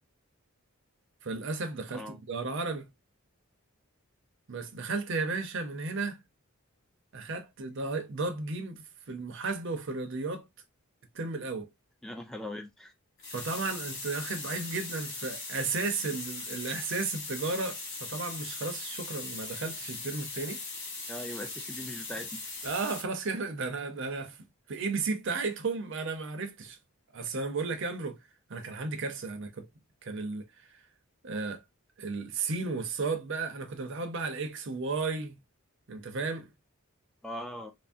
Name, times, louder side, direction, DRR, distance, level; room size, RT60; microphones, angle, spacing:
voice 1, 1.2-2.9 4.5-6.2 7.1-10.5 11.1-11.7 13.3-20.6 22.6-26.8 27.1-28.2 28.5-29.7 30.0-30.8 31.2-31.6 32.0-35.4 35.9-36.5, right 3 dB, 55° right, 0.6 m, -34 dB
voice 2, 12.0-12.9 21.1-22.4 37.2-37.7, left 1 dB, ahead, 0.4 m, -40 dB
sound 1, 13.2-23.0, left 3 dB, 50° left, 1.0 m, -39 dB
3.4 x 2.0 x 2.4 m
head